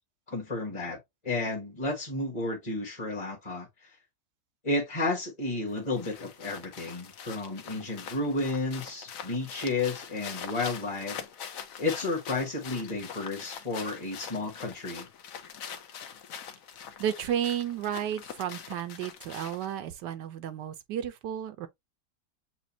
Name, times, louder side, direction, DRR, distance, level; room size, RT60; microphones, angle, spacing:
voice 1, 0.3-1.0 1.2-3.7 4.6-11.2 11.8-15.1, left 2 dB, 20° left, 1.2 m, -32 dB
sound 1, 5.7-19.8, left 8 dB, 60° left, 1.1 m, -43 dB
voice 2, 17.0-21.7, right 10 dB, 85° right, 1.3 m, -32 dB
7.3 x 2.6 x 2.7 m
omnidirectional pair, 1.8 m